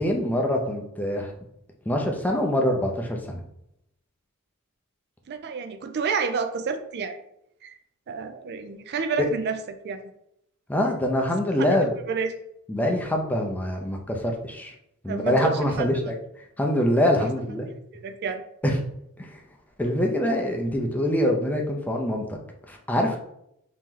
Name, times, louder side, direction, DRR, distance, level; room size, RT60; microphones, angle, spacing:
voice 1, 0.0-1.3 1.9-3.4 9.2-9.3 10.7-11.9 12.7-14.7 15.0-16.1 16.6-17.7 18.6-18.8 19.2-19.3 19.8-22.4 22.7-23.2, left 1 dB, 10° left, 1 dB, 0.5 m, -24 dB
voice 2, 5.3-7.2 7.6-7.8 8.1-10.0 11.6-11.7 12.1-12.3 15.1-15.9 17.9-18.4, right 5 dB, 50° right, 8 dB, 0.4 m, -29 dB
3.1 x 2.9 x 3.7 m, 0.77 s
head